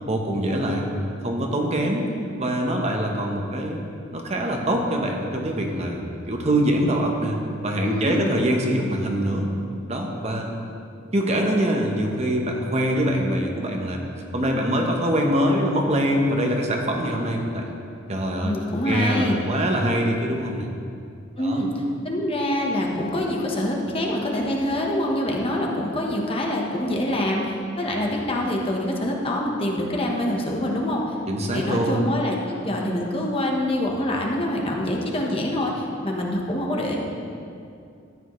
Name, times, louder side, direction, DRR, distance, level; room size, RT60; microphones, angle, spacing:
voice 1, 0.1-0.9 1.2-2.1 2.4-3.8 4.1-9.5 9.9-10.5 11.1-14.0 14.3-17.7 18.1-18.5 18.9-20.7 21.4-21.6 31.3-32.1, right 1 dB, 35° right, 1 dB, 1.0 m, -24 dB
voice 2, 7.8-8.3 18.4-19.4 21.4-31.1 31.5-37.0, left 1 dB, 30° left, -1 dB, 1.1 m, -25 dB
13.5 x 8.9 x 3.2 m, 2.4 s
head